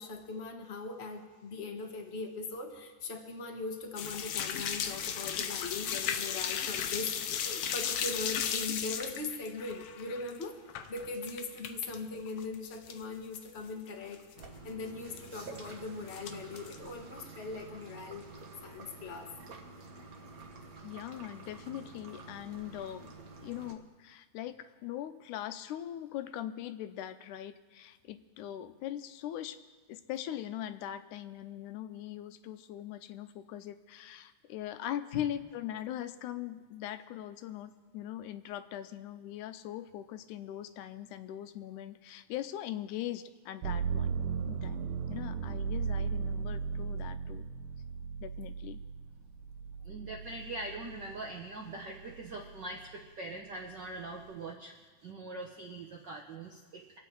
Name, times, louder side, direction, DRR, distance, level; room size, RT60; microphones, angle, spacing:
voice 1, 0.0-10.6 10.9-14.2 14.6-18.3 18.6-19.3 35.1-35.2, left 3 dB, 55° left, 2 dB, 0.7 m, -40 dB
sound 1, 4.0-12.0 12.3-13.0 13.3-13.4 13.9-14.0 14.1-14.4 15.2-15.7 16.1-16.8, left 8 dB, 70° left, 1.4 m, -35 dB
sound 2, 14.4-23.7, right 3 dB, 50° right, 1.1 m, -49 dB
voice 2, 20.8-23.1 23.4-29.6 29.9-47.5 48.2-48.8, left 12 dB, 90° left, 10 dB, 2.2 m, -41 dB
sound 3, 43.6-51.4 51.9-52.7, right 6 dB, 90° right, 2.4 m, -36 dB
voice 3, 49.8-54.7 55.0-57.0, right 2 dB, 70° right, 1 dB, 1.0 m, -42 dB
25.5 x 8.6 x 4.6 m, 1.3 s
omnidirectional pair, 3.5 m